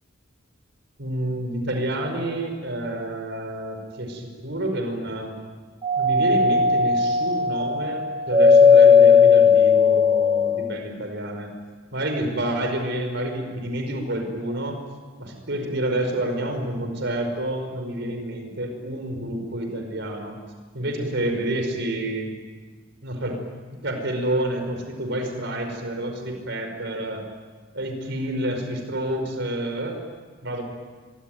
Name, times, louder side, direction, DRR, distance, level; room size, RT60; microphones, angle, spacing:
voice 1, 1.0-5.3 6.0-11.5 11.9-14.8 15.2-20.4 20.7-22.3 23.0-23.4 23.8-27.2 27.7-30.0 30.4-30.6, right 1 dB, 60° right, 4 dB, 5.3 m, -28 dB
Doorbell, 5.8-10.7, left 5 dB, 25° right, 2.5 m, -16 dB
25.5 x 24.0 x 9.3 m, 1.4 s
head